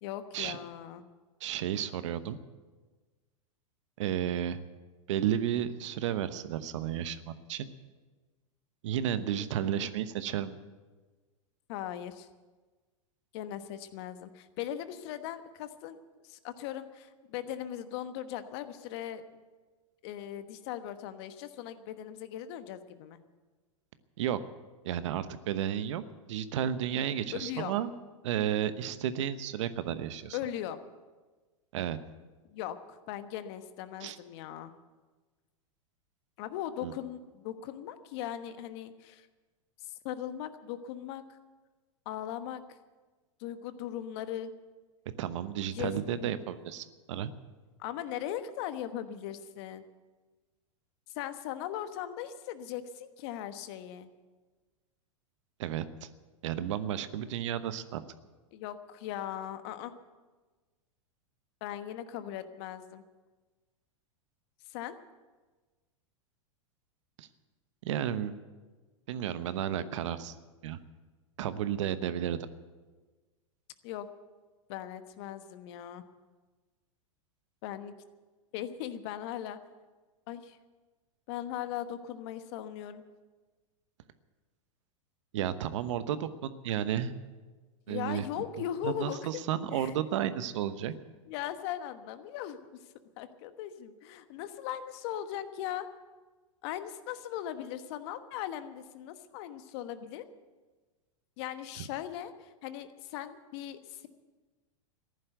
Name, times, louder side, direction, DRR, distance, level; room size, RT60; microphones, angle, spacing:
voice 1, 0.0-1.0 9.4-9.9 11.7-12.3 13.3-16.0 16.2-19.4 20.0-23.2 27.3-27.8 30.3-30.8 32.5-34.7 36.4-39.3 39.8-41.4 42.0-42.8 43.4-44.5 45.7-46.3 47.8-49.8 51.1-54.1 58.5-59.9 61.6-63.0 64.7-64.9 73.8-74.1 74.7-76.0 77.6-77.9 78.5-79.6 80.3-80.6 81.3-83.0 87.9-89.2 89.7-89.9 91.3-92.6 93.2-95.9 96.6-100.2 101.4-104.1, left 11 dB, 55° left, 11 dB, 1.2 m, -39 dB
voice 2, 1.4-2.4 4.0-4.6 5.1-7.7 8.8-10.5 24.2-24.4 24.8-26.0 26.3-27.9 28.2-30.4 31.7-32.0 34.0-34.2 36.8-36.9 45.2-47.3 55.6-56.1 56.4-58.0 67.2-67.3 67.8-68.3 69.1-70.3 70.6-70.8 71.4-72.4 85.3-87.1 87.9-88.2 88.8-90.9 101.8-101.9, right 10 dB, 65° right, 13 dB, 1.0 m, -32 dB
14.5 x 11.0 x 8.1 m, 1.3 s
hypercardioid pair, 100°, 17 cm